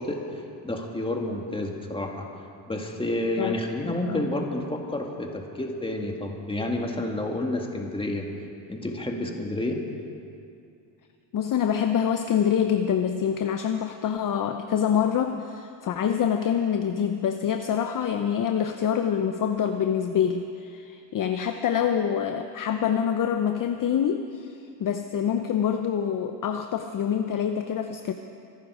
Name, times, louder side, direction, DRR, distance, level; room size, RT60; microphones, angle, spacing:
voice 1, 0.0-2.3 2.7-8.3 8.7-9.8, left 1 dB, 10° left, 1 dB, 2.1 m, -30 dB
voice 2, 3.4-4.3 11.3-28.1, left 8 dB, 40° left, 7 dB, 0.7 m, -26 dB
25.0 x 11.5 x 4.9 m, 2.5 s
cardioid pair, 110°, 50 cm